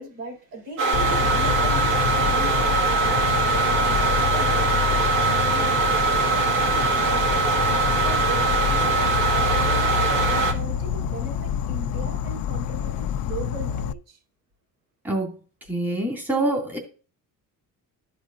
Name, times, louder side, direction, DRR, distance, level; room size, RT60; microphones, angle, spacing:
voice 1, 0.0-5.1 5.4-7.6 7.9-9.0 9.2-14.2, right 2 dB, 80° right, 5.0 m, -38 dB
sound 1, 0.8-10.5, right 4 dB, 65° right, 1.9 m, -22 dB
Insect, 0.9-13.9, left 9 dB, 70° left, 0.6 m, -27 dB
voice 2, 15.7-16.8, right 2 dB, 5° right, 2.4 m, -25 dB
13.5 x 5.1 x 2.6 m
cardioid pair, 145°, 35 cm